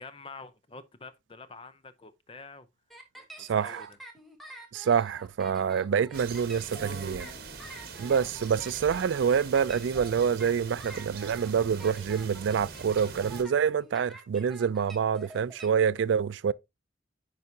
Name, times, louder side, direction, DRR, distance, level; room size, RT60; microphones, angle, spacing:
voice 1, 0.0-2.7 3.4-4.0, left 4 dB, 30° left, 0.6 m, -47 dB
sound 1, 2.9-15.7, right 2 dB, ahead, 1.1 m, -48 dB
voice 2, 3.4-3.9 4.7-7.3 8.0-16.5, right 7 dB, 80° right, 0.3 m, -27 dB
sound 2, 6.1-13.4, right 4 dB, 55° right, 1.3 m, -43 dB
9.4 x 4.8 x 2.8 m
head